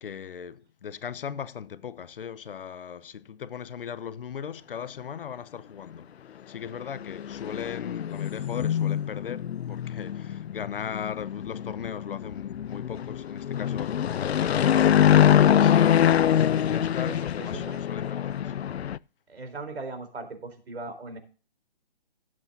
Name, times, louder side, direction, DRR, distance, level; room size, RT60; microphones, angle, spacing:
voice 1, 0.0-6.1 6.5-18.5, left 8 dB, 60° left, 0.9 m, -38 dB
sound 1, 7.0-19.0, left 10 dB, 85° left, 0.6 m, -24 dB
voice 2, 17.0-17.8 19.3-21.2, right 3 dB, 85° right, 4.1 m, -39 dB
17.0 x 8.0 x 2.7 m
hypercardioid pair, 165°, 31 cm